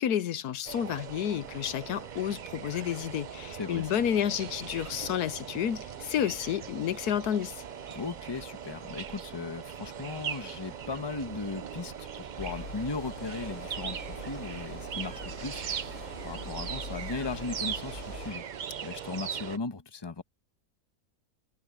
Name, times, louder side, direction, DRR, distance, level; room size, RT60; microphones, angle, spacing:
voice 1, 0.0-7.6, left 10 dB, 80° left, 1.3 m, -30 dB
sound 1, 0.6-19.6, right 8 dB, 75° right, 0.4 m, -40 dB
sound 2, 1.2-18.2, right 2 dB, 20° right, 2.0 m, -55 dB
voice 2, 3.6-3.9 7.9-12.1 12.3-18.4 18.8-20.2, left 4 dB, 20° left, 1.0 m, -37 dB
sound 3, 12.4-18.3, left 3 dB, 55° left, 2.3 m, -44 dB
omnidirectional pair, 1.6 m